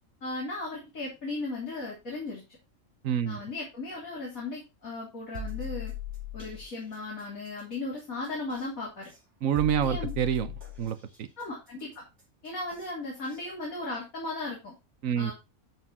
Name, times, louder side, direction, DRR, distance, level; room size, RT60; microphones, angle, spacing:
voice 1, 0.2-2.4 3.3-5.9 6.3-9.1 9.8-10.1 11.4-12.0 12.4-14.7 15.2-15.3, left 2 dB, 85° left, 3.7 m, -36 dB
voice 2, 3.0-3.4 9.4-10.5 10.8-11.3 15.0-15.3, right 9 dB, 75° right, 1.1 m, -27 dB
sound 1, 5.3-6.6 8.5-8.6 9.6-10.9 12.7-12.8 13.3-13.4, left 7 dB, 55° right, 3.6 m, -37 dB
12.0 x 4.4 x 4.2 m
omnidirectional pair, 1.4 m